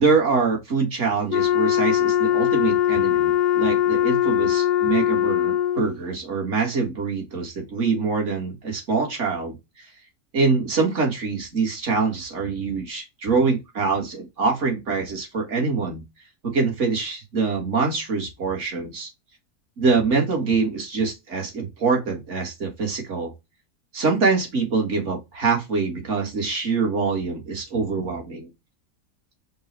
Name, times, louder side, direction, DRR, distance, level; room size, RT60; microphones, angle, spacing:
voice 1, 0.0-9.5 10.3-16.0 16.4-19.1 19.8-23.3 23.9-28.5, right 4 dB, 45° right, 1.8 m, -24 dB
Wind instrument woodwind instrument, 1.3-6.0, left 11 dB, 90° left, 1.2 m, -21 dB
5.3 x 2.4 x 3.2 m
omnidirectional pair, 1.8 m